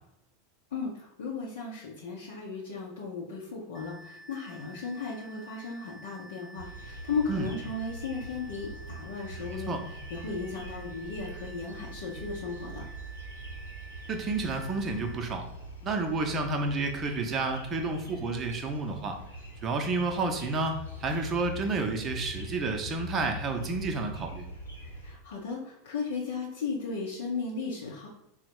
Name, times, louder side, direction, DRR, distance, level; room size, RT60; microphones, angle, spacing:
voice 1, 0.7-9.7 10.1-12.8 25.0-28.1, left 4 dB, 65° left, -4 dB, 0.7 m, -35 dB
sound 1, 3.7-15.2, right 2 dB, 5° left, 1.0 m, -50 dB
sound 2, 6.6-25.1, right 1 dB, 85° left, 0.9 m, -43 dB
voice 2, 14.1-15.4 15.8-19.2 19.6-24.4, right 3 dB, 30° right, 4 dB, 0.7 m, -30 dB
3.8 x 2.1 x 4.4 m, 0.85 s
figure-of-eight pair, 85°, 0 cm